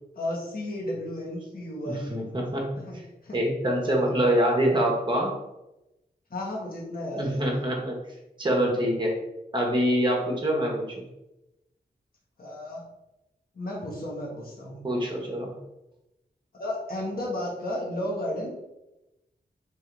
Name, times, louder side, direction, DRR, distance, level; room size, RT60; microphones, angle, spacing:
voice 1, 0.1-2.2 2.9-3.4 6.3-7.4 12.4-12.8 13.5-14.8 16.5-18.6, left 1 dB, 65° left, -4 dB, 1.3 m, -33 dB
voice 2, 1.8-2.8 3.3-5.3 7.1-8.0 8.4-9.1 9.5-11.0 14.8-15.6, equal, 30° right, -1 dB, 1.1 m, -25 dB
3.4 x 2.7 x 4.6 m, 0.95 s
wide cardioid pair, 100°, 17 cm